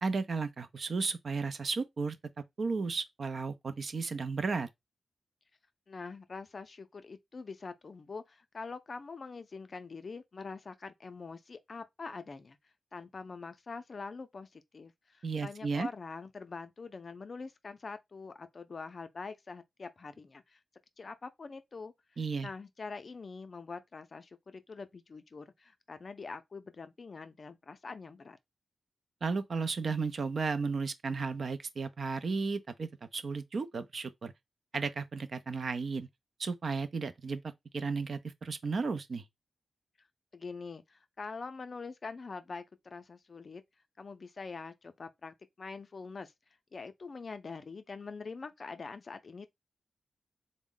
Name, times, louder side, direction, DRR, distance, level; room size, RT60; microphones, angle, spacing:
voice 1, 0.0-2.2 2.6-4.7 15.2-15.9 22.2-22.5 29.2-34.3 34.7-36.1 36.4-37.4 37.7-39.2, right 4 dB, 60° right, 0.4 m, -34 dB
voice 2, 5.9-12.6 12.9-20.6 21.0-21.9 22.4-28.4 40.3-43.6 44.0-46.3 46.7-49.5, left 4 dB, 50° left, 0.4 m, -44 dB
3.5 x 2.1 x 3.7 m
wide cardioid pair, 90°, 0 cm